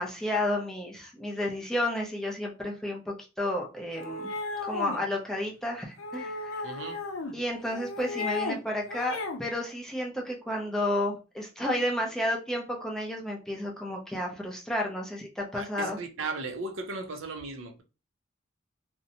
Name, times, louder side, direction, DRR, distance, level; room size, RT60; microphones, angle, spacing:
voice 1, 0.0-4.3 4.6-6.7 7.3-16.0, left 1 dB, 5° left, 0.4 m, -31 dB
sound 1, 3.9-5.0 6.0-7.3 7.7-8.6 8.9-9.4, left 3 dB, 75° left, 0.6 m, -34 dB
voice 2, 6.6-7.0 15.5-17.8, right 3 dB, 75° right, 0.5 m, -36 dB
2.6 x 2.1 x 2.7 m
head